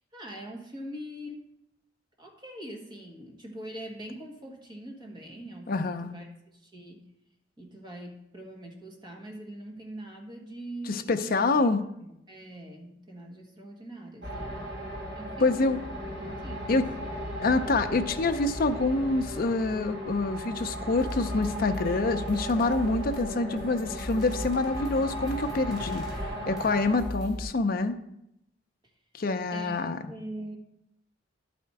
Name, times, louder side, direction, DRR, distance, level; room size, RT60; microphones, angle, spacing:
voice 1, 0.1-1.5 2.2-7.0 7.6-14.6 15.1-15.8 16.4-16.9 29.5-30.6, right 1 dB, 25° right, 0 dB, 1.4 m, -43 dB
voice 2, 5.7-6.1 10.9-11.8 15.4-15.8 16.7-16.8 17.4-28.0 29.2-30.0, left 3 dB, 50° left, 8 dB, 0.5 m, -26 dB
sound 1, 14.2-27.0, equal, 60° right, 2.6 m, -37 dB
sound 2, 20.6-20.7 21.0-27.4, left 1 dB, ahead, 2.9 m, -39 dB
11.0 x 4.2 x 4.7 m, 0.79 s
head